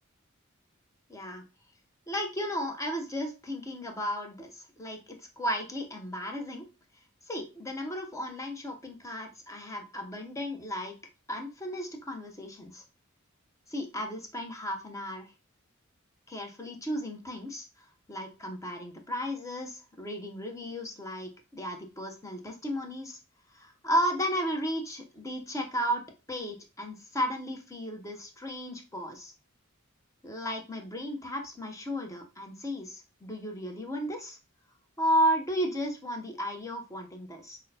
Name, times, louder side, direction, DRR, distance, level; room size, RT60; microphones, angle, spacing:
voice 1, 1.1-1.4 2.1-6.7 7.3-11.0 11.3-12.8 13.7-15.3 16.3-17.7 18.1-23.2 23.5-26.0 26.3-29.3 30.2-34.4 35.0-37.6, equal, 15° left, 3 dB, 0.7 m, -34 dB
6.1 x 2.1 x 2.7 m, 0.30 s
head